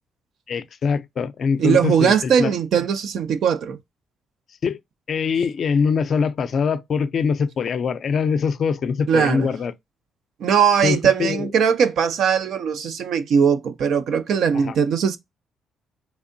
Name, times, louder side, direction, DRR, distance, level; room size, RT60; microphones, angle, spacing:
voice 1, 0.5-2.5 4.6-4.8 5.1-9.7 10.8-11.5 14.5-14.8, left 6 dB, 55° left, 0.4 m, -23 dB
voice 2, 1.6-3.8 9.1-9.5 10.4-15.2, right 7 dB, 70° right, 0.6 m, -20 dB
3.5 x 3.3 x 2.5 m
cardioid pair, 90°, 0 cm